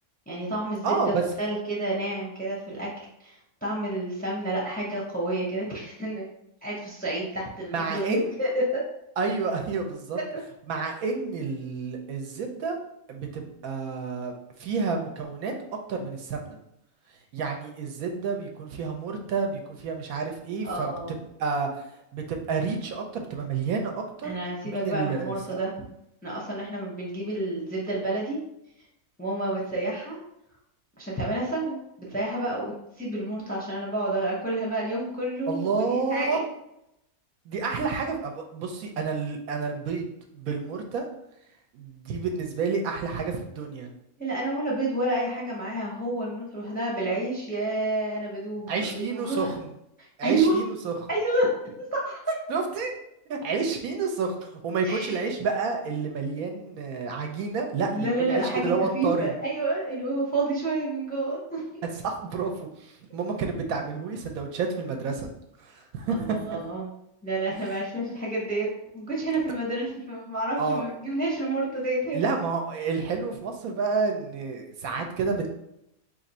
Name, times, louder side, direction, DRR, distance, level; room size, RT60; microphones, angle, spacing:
voice 1, 0.3-2.9 3.2-3.3 3.6-6.3 6.6-8.8 10.3-10.4 20.6-21.1 24.2-25.8 26.2-28.4 29.2-30.2 31.0-36.4 44.2-49.6 50.0-50.6 51.1-51.5 51.8-52.3 54.8-55.2 57.9-61.6 66.1-66.9 67.2-68.7 68.9-72.3, right 2 dB, 10° left, -4 dB, 0.6 m, -29 dB
voice 2, 0.8-1.2 7.7-8.3 9.2-10.2 10.7-12.8 13.1-14.3 14.6-15.5 15.9-16.6 17.3-21.7 22.1-24.3 24.7-25.6 35.5-36.4 37.5-41.0 41.7-43.9 48.7-49.7 50.2-50.9 52.5-52.9 53.3-59.3 62.0-62.7 63.1-65.3 65.6-66.2 70.6-70.9 72.1-75.5, right 4 dB, 80° right, 3 dB, 1.1 m, -29 dB
3.2 x 2.5 x 4.1 m, 0.80 s
omnidirectional pair, 1.5 m